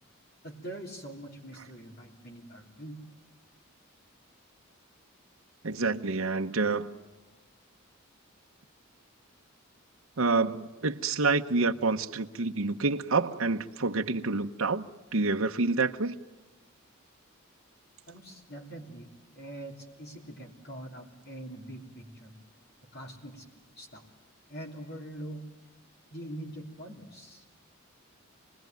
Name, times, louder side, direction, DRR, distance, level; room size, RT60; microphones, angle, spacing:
voice 1, 0.4-3.0 18.1-19.1 19.3-22.3 22.9-23.5 23.8-24.0 24.5-25.4 26.1-27.4, right 1 dB, 50° left, 1 dB, 3.3 m, -43 dB
voice 2, 5.6-7.0 10.2-14.8 15.1-16.2, right 3 dB, 75° right, 5 dB, 0.9 m, -28 dB
27.5 x 20.5 x 9.2 m, 1.2 s
head